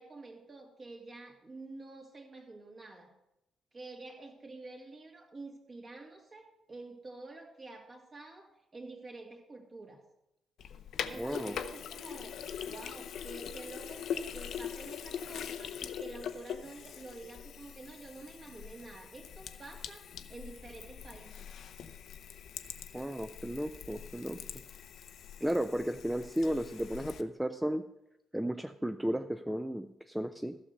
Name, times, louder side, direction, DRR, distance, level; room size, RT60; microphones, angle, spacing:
voice 1, 0.0-3.1 3.7-10.0 11.1-12.4 12.7-21.5, right 2 dB, 40° right, 2 dB, 2.4 m, -48 dB
Sink (filling or washing), 10.6-27.2, left 8 dB, 60° left, 0.6 m, -43 dB
voice 2, 11.2-11.6 22.9-24.4 25.4-27.9 28.3-30.6, equal, 5° right, 8 dB, 0.6 m, -34 dB
15.0 x 6.5 x 5.6 m, 0.87 s
figure-of-eight pair, 45°, 0 cm